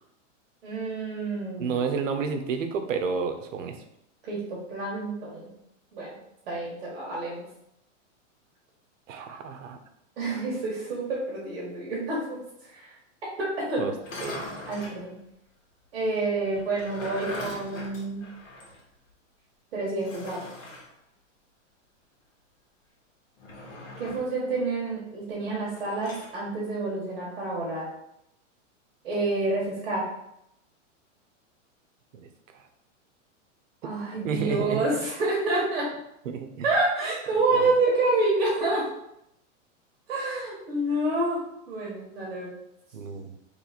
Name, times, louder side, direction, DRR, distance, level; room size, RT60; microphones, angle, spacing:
voice 1, 0.6-1.8 4.2-5.5 5.9-6.2 6.5-7.4 10.2-12.4 12.7-13.0 13.4-13.8 14.7-15.2 15.9-18.2 19.7-20.4 24.0-27.9 29.0-30.1 33.8-35.9 36.6-38.8 40.1-42.5, right 2 dB, 50° right, -5 dB, 1.4 m, -28 dB
voice 2, 1.6-3.8 9.1-9.8 13.8-13.9 14.2-14.4 32.1-32.7 34.2-34.8 36.2-36.7 37.3-37.7 42.9-43.4, right 6 dB, 80° right, 7 dB, 0.8 m, -31 dB
sound 1, 14.0-15.0 16.5-18.8 19.1-19.2 20.0-20.9 23.4-24.4 25.7-26.3, left 2 dB, 85° left, 1.6 m, -40 dB
3.3 x 3.1 x 4.0 m, 0.79 s
supercardioid pair, 180°, 38 cm